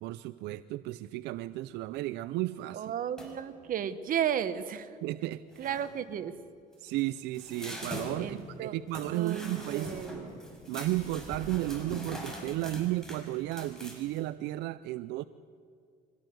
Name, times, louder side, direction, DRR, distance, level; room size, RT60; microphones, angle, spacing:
voice 1, 0.0-2.8 5.0-5.7 6.8-10.0 10.7-15.2, right 16 dB, 90° right, 15 dB, 0.5 m, -34 dB
voice 2, 2.7-4.9 5.6-6.3 8.2-8.7 9.1-10.4, right 9 dB, 55° right, 11 dB, 1.4 m, -34 dB
sound 1, 3.2-3.5 5.1-5.2 5.5-6.0 6.7-14.2, equal, 5° left, 5.6 m, -43 dB
24.0 x 17.0 x 7.9 m, 2.4 s
cardioid pair, 110°, 17 cm